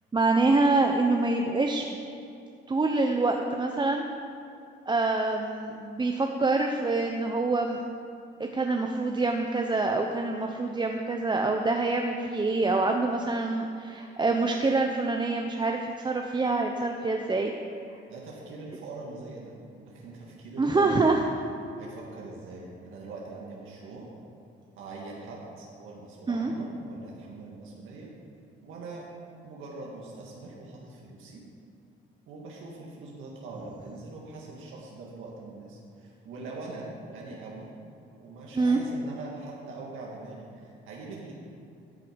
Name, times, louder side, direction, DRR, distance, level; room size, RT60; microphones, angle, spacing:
voice 1, 0.1-1.8 2.7-4.0 4.9-7.8 8.4-17.5 20.6-21.2 26.3-26.5 38.6-38.8, right 3 dB, 25° right, 3 dB, 0.7 m, -26 dB
voice 2, 18.1-19.5 19.8-21.0 21.8-24.1 24.8-28.1 28.6-29.1 29.4-31.4 32.3-37.7 38.2-41.3, right 3 dB, 85° right, -3 dB, 1.8 m, -42 dB
13.0 x 6.6 x 5.2 m, 2.7 s
cardioid pair, 90°, 20 cm